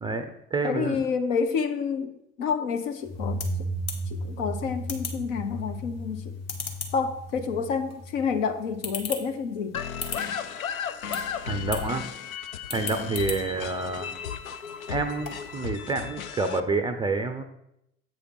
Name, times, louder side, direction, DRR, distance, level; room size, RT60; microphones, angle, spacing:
voice 1, 0.0-1.0 11.4-12.0 12.7-14.1 14.9-17.4, right 3 dB, 10° right, 7 dB, 0.4 m, -28 dB
voice 2, 0.6-3.4 4.1-6.3 6.9-9.8, left 6 dB, 65° left, 8 dB, 0.9 m, -29 dB
sound 1, 2.8-15.6, left 4 dB, 40° left, 1.5 m, -41 dB
sound 2, 3.0-9.6, equal, 20° left, 2.3 m, -35 dB
sound 3, 9.7-16.6, left 8 dB, 80° left, 0.5 m, -34 dB
8.1 x 4.9 x 4.6 m, 0.79 s
figure-of-eight pair, 75°, 41 cm